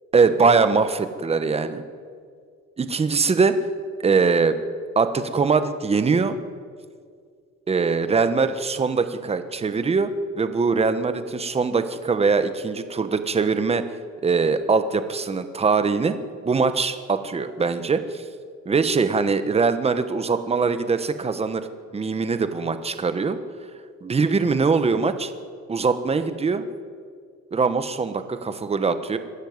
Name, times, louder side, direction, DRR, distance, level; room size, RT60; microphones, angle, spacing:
voice 1, 0.1-1.8 2.8-3.6 4.0-4.6 4.9-6.4 7.7-13.8 14.2-16.2 16.4-18.2 18.6-21.7 21.9-23.4 24.0-25.3 25.7-26.6 27.5-29.2, right 4 dB, 20° right, 10 dB, 1.2 m, -22 dB
23.0 x 12.5 x 9.6 m, 2.1 s
cardioid pair, 140°, 29 cm